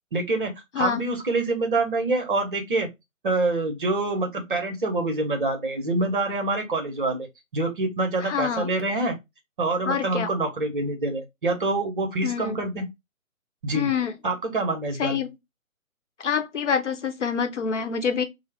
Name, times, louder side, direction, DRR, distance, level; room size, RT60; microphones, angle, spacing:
voice 1, 0.1-2.9 3.2-7.3 7.5-9.2 9.6-12.8 13.6-13.9 14.2-15.2, right 2 dB, 35° right, 0.8 m, -26 dB
voice 2, 8.2-8.7 9.8-10.3 12.2-12.6 13.7-14.1 15.0-15.3 16.2-18.2, left 6 dB, 55° left, 0.8 m, -26 dB
4.0 x 2.0 x 3.3 m
figure-of-eight pair, 135°, 42 cm